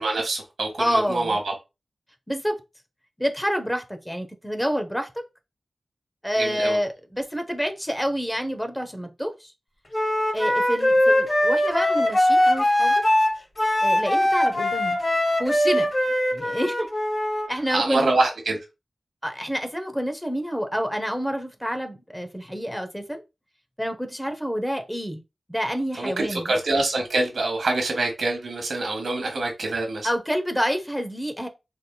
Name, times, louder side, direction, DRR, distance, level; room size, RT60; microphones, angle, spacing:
voice 1, 0.0-1.5 6.4-6.8 17.7-18.6 26.0-30.1, right 2 dB, 90° right, 1.0 m, -25 dB
voice 2, 0.8-1.4 2.3-2.6 3.2-5.1 6.2-9.5 10.3-13.0 13.8-15.0 15.4-15.9 16.3-16.9 17.5-18.1 19.2-23.2 23.8-25.2 25.5-26.5 30.0-31.5, equal, 5° left, 0.8 m, -28 dB
Wind instrument woodwind instrument, 9.9-17.5, left 1 dB, 40° left, 1.8 m, -21 dB
4.2 x 3.4 x 2.2 m
wide cardioid pair, 60°, 0 cm